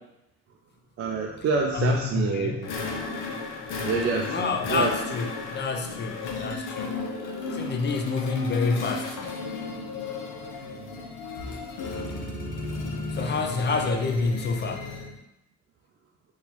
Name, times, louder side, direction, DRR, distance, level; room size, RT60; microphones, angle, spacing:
voice 1, 1.0-2.7 3.9-4.9 10.6-10.9, right 4 dB, 50° right, -1 dB, 0.4 m, -27 dB
voice 2, 1.7-2.6 4.3-6.9 7.5-9.2 13.1-14.9, left 4 dB, 35° left, 4 dB, 0.4 m, -28 dB
sound 1, 2.6-15.2, left 3 dB, 85° left, 0.6 m, -34 dB
2.9 x 2.3 x 3.9 m, 0.91 s
cardioid pair, 90°, 30 cm